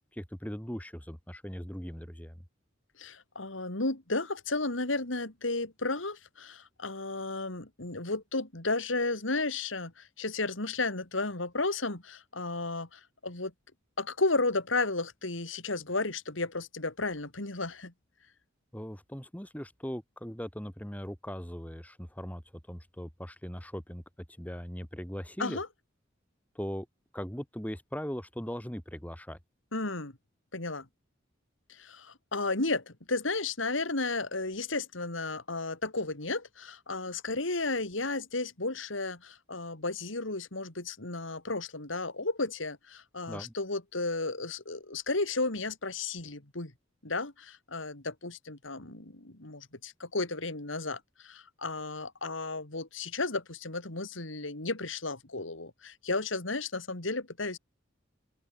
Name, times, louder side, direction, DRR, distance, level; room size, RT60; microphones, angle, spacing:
voice 1, 0.1-2.4 18.7-22.4 22.7-24.0 24.4-25.6 26.5-26.9 27.1-29.4 43.3-43.5, equal, 10° left, 2.9 m, -39 dB
voice 2, 3.0-13.5 14.0-17.9 25.4-25.7 29.7-30.1 30.5-30.8 31.7-46.7 47.0-57.6, left 3 dB, 80° left, 3.3 m, -33 dB
open air
head